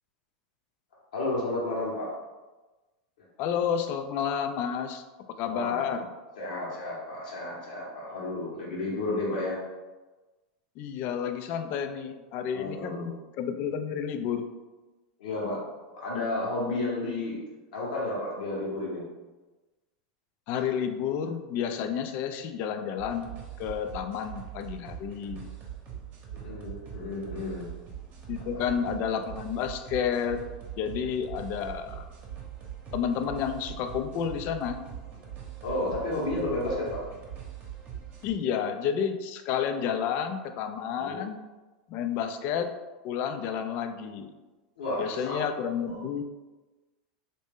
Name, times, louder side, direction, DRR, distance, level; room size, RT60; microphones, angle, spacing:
voice 1, 1.1-2.1 5.5-6.0 6.4-9.6 12.5-13.1 15.2-15.6 15.9-17.4 17.7-19.0 26.3-27.7 28.5-28.6 35.6-37.0 40.9-41.2 44.8-45.4 45.8-46.0, left 2 dB, 80° left, -5 dB, 1.2 m, -32 dB
voice 2, 3.4-5.0 5.3-6.1 8.7-8.8 10.8-14.5 20.5-23.3 23.6-25.5 28.3-30.4 30.8-32.0 32.9-34.8 38.2-41.4 41.9-42.8 43.0-44.3 45.0-46.2, left 8 dB, 50° left, 8 dB, 0.4 m, -30 dB
sound 1, 23.0-38.3, right 9 dB, 40° right, 0.8 m, -42 dB
3.1 x 2.6 x 3.5 m, 1.2 s
supercardioid pair, 115°, 4 cm